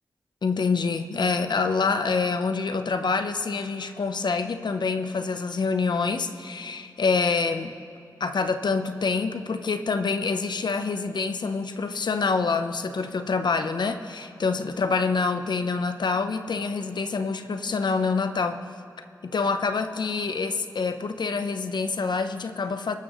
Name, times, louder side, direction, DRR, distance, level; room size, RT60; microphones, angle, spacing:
voice 1, 0.4-7.7 8.2-18.6 19.2-22.9, left 4 dB, 70° left, 8 dB, 0.8 m, -26 dB
24.5 x 12.5 x 3.2 m, 2.4 s
cardioid pair, 40°, 8 cm